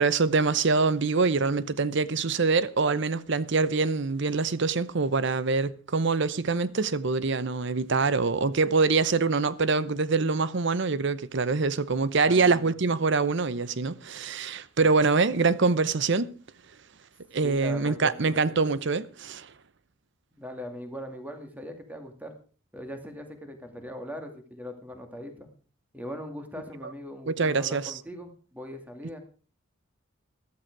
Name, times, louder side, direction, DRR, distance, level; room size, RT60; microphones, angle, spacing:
voice 1, 0.0-16.3 17.3-19.5 26.8-26.9 27.3-27.9, right 4 dB, 60° right, 0.8 m, -25 dB
voice 2, 12.3-12.7 17.4-18.3 20.3-22.3 22.7-25.5 25.9-29.2, equal, 10° right, 2.3 m, -40 dB
14.0 x 13.0 x 4.7 m
head